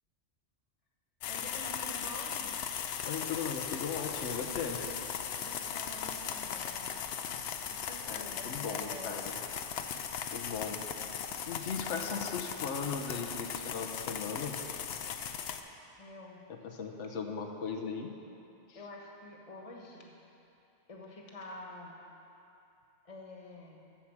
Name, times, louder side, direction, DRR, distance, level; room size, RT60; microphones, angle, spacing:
sound 1, 1.2-15.6, left 8 dB, 65° left, 0.8 m, -38 dB
voice 1, 1.3-2.6 5.4-7.0 7.7-9.1 16.0-16.4 18.7-20.1 20.9-22.0 23.0-23.8, left 1 dB, 30° left, -1 dB, 1.3 m, -47 dB
voice 2, 3.0-4.9 8.0-9.4 10.3-10.8 11.5-14.6 16.5-18.1 18.7-18.8, left 5 dB, 85° left, 3 dB, 1.1 m, -38 dB
13.5 x 4.8 x 7.2 m, 2.8 s
omnidirectional pair, 1.2 m